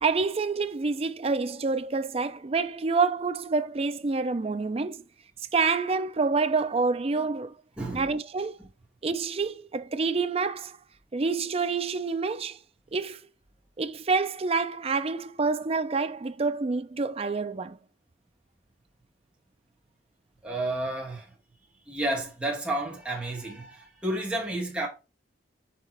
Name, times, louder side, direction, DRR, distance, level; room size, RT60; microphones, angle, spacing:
voice 1, 0.0-5.0 5.5-7.5 7.9-8.5 9.0-10.8 11.1-12.6 12.9-13.2 13.8-17.8, right 4 dB, 35° right, 0.5 m, -27 dB
voice 2, 7.8-8.1 8.6-8.7 20.4-21.4 21.9-24.9, right 1 dB, 5° right, 1.8 m, -31 dB
6.0 x 3.6 x 4.4 m
head